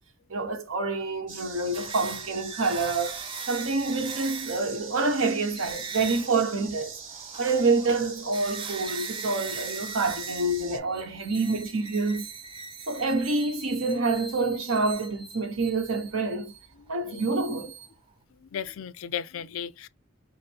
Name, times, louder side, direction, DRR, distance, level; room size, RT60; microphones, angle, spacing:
voice 1, 0.3-3.2 3.5-7.0 7.4-12.3 12.9-16.5 16.9-17.7, right 3 dB, 85° right, 1.0 m, -27 dB
sound 1, 1.3-10.8, right 5 dB, 65° right, 1.7 m, -43 dB
sound 2, 1.7-5.0 5.6-6.5 6.9-18.1, right 5 dB, 25° right, 0.5 m, -40 dB
voice 2, 16.8-17.3 18.5-19.9, left 8 dB, 85° left, 0.4 m, -35 dB
4.9 x 2.0 x 4.3 m
head